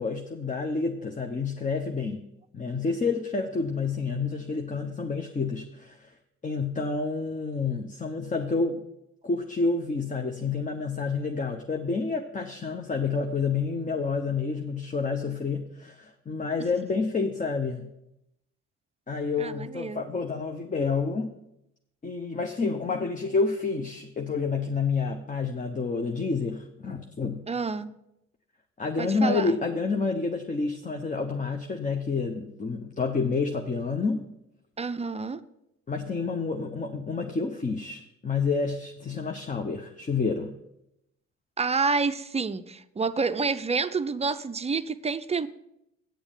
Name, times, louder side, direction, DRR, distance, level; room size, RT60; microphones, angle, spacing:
voice 1, 0.0-2.2 2.5-6.1 6.4-8.8 9.2-17.9 19.1-21.3 22.0-27.5 28.8-34.2 35.9-40.5, left 4 dB, 25° left, 5 dB, 0.7 m, -29 dB
voice 2, 19.4-20.0 27.5-27.9 29.0-29.6 34.8-35.4 41.6-45.5, right 4 dB, 20° right, 12 dB, 0.5 m, -28 dB
8.9 x 7.0 x 5.4 m, 0.83 s
cardioid pair, 90°, 30 cm